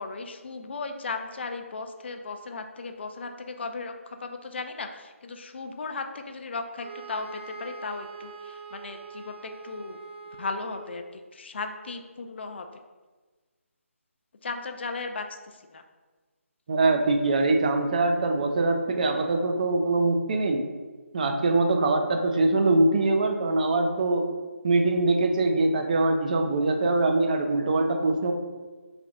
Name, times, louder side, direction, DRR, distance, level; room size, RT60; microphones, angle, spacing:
voice 1, 0.0-10.0 10.4-12.8 14.4-15.8, left 4 dB, 50° left, 6 dB, 0.4 m, -36 dB
sound 1, 6.8-11.2, right 5 dB, 50° right, 1.2 m, -43 dB
voice 2, 16.7-20.6 21.1-24.2 24.6-28.3, right 2 dB, 35° right, 4 dB, 0.4 m, -23 dB
3.2 x 2.5 x 3.8 m, 1.3 s
figure-of-eight pair, 155°, 8 cm